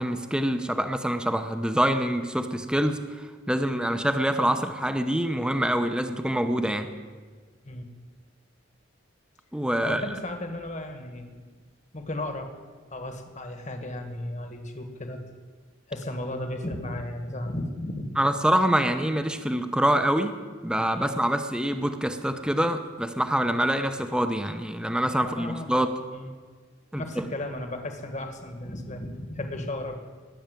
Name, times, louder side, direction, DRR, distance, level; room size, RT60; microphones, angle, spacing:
voice 1, 0.0-6.9 9.5-10.0 18.2-20.4 20.6-25.9 26.9-27.3, right 1 dB, 5° right, 8 dB, 0.8 m, -25 dB
voice 2, 9.8-11.4 11.9-12.5 12.9-15.2 15.9-18.2 20.9-21.2 25.2-26.3 27.0-30.0, left 1 dB, 40° left, 6 dB, 1.6 m, -35 dB
19.0 x 7.1 x 9.2 m, 1.5 s
head